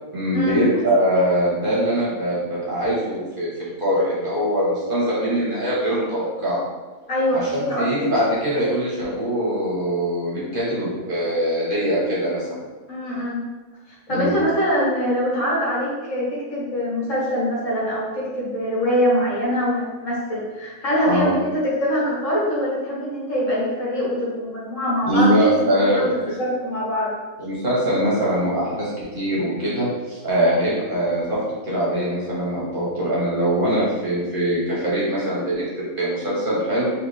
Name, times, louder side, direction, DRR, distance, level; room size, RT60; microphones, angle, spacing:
voice 1, 0.1-6.6 7.3-12.5 14.1-14.3 21.1-21.3 25.0-26.3 27.4-36.9, equal, 40° right, -7 dB, 1.2 m, -22 dB
voice 2, 7.1-7.9 12.9-13.4 14.1-26.1 26.4-27.1, equal, 65° left, -7 dB, 1.7 m, -23 dB
4.0 x 3.0 x 3.3 m, 1.3 s
omnidirectional pair, 1.5 m